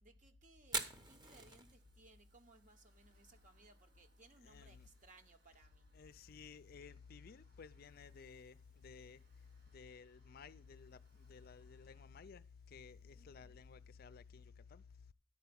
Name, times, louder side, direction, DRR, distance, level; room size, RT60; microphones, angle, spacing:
voice 1, 0.0-5.9 13.1-13.6, right 1 dB, 40° right, 1.1 m, -63 dB
Fire, 0.6-14.5, right 2 dB, 20° right, 1.0 m, -53 dB
sound 1, 0.8-12.1, right 2 dB, 80° right, 5.3 m, -79 dB
voice 2, 4.4-4.9 5.9-9.2 9.7-14.8, left 5 dB, 50° left, 0.4 m, -56 dB
11.0 x 4.7 x 6.9 m
head